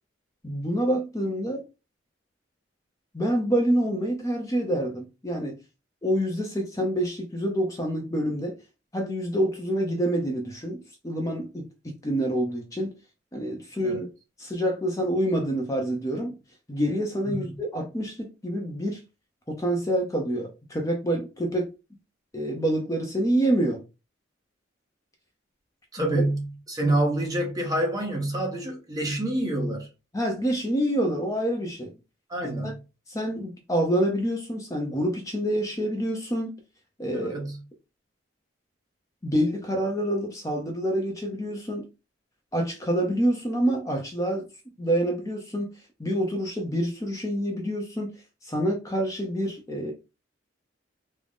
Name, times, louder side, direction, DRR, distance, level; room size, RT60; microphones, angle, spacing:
voice 1, 0.4-1.6 3.1-5.6 6.0-8.6 8.9-12.9 13.3-14.1 14.4-16.4 16.7-19.0 19.5-21.7 22.3-23.8 26.0-26.2 30.1-31.9 32.4-32.7 33.1-36.5 37.0-37.3 39.2-41.8 42.5-44.5 44.8-45.7 46.0-48.1 48.4-49.9, right 1 dB, 15° left, 0.6 m, -27 dB
voice 2, 17.2-17.6 25.9-29.9 32.3-32.8 37.1-37.6, right 1 dB, 20° right, 0.9 m, -27 dB
3.7 x 2.0 x 3.5 m
head